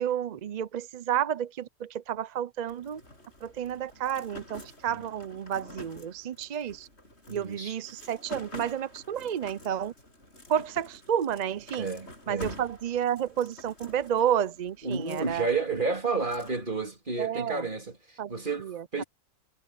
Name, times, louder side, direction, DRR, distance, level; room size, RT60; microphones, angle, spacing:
voice 1, 0.0-3.0 3.4-6.9 7.3-9.9 10.5-11.9 12.3-15.5 17.2-17.6 18.2-18.3 18.6-19.0, right 9 dB, 55° right, 0.4 m, -31 dB
sound 1, 2.6-16.5, left 1 dB, 50° left, 6.8 m, -48 dB
voice 2, 7.3-7.8 11.7-12.6 14.8-19.0, right 4 dB, 35° right, 3.5 m, -31 dB
omnidirectional pair, 1.4 m